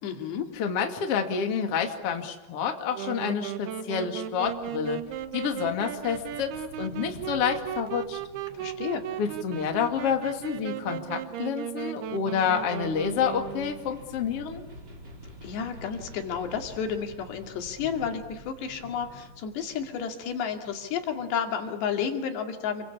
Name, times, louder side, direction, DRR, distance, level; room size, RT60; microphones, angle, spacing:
voice 1, 0.0-0.5 8.5-9.0 15.4-22.9, left 7 dB, 75° left, 4 dB, 4.5 m, -31 dB
voice 2, 0.5-5.0 5.3-6.5 6.8-8.2 9.2-14.6, left 7 dB, 40° left, 4 dB, 2.6 m, -28 dB
Wind instrument woodwind instrument, 2.9-13.9, right 11 dB, 75° right, 3.0 m, -36 dB
sound 1, 4.4-21.9, equal, 25° right, 3.6 m, -49 dB
28.5 x 23.5 x 8.5 m, 0.98 s
omnidirectional pair, 4.9 m